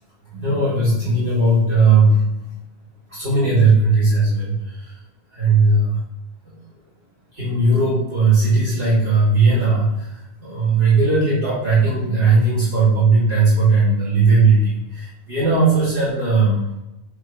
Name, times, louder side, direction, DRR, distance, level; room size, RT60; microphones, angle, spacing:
voice 1, 0.3-2.5 3.1-5.0 5.3-6.0 6.4-6.5 7.3-16.6, right 3 dB, 45° right, -8 dB, 2.4 m, -17 dB
7.8 x 3.9 x 3.7 m, 0.94 s
omnidirectional pair, 1.2 m